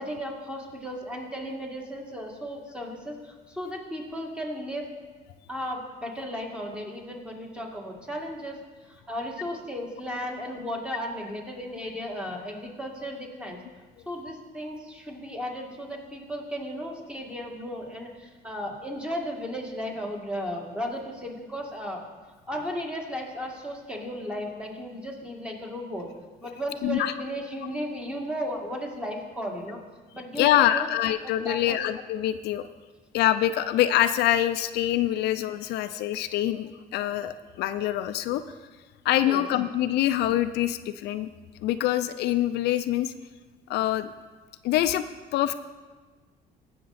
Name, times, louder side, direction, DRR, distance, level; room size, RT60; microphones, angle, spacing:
voice 1, 0.0-4.9 5.5-13.6 14.1-22.0 22.5-26.1 26.4-29.8 30.1-30.9 31.2-31.8 39.2-39.4, equal, 5° right, 0 dB, 2.0 m, -35 dB
voice 2, 26.8-27.1 30.4-32.7 33.1-38.4 39.0-41.3 41.6-43.1 43.7-44.1 44.6-45.0 45.3-45.5, left 12 dB, 80° left, 11 dB, 0.5 m, -25 dB
16.5 x 6.6 x 4.2 m, 1.3 s
cardioid pair, 110°, 17 cm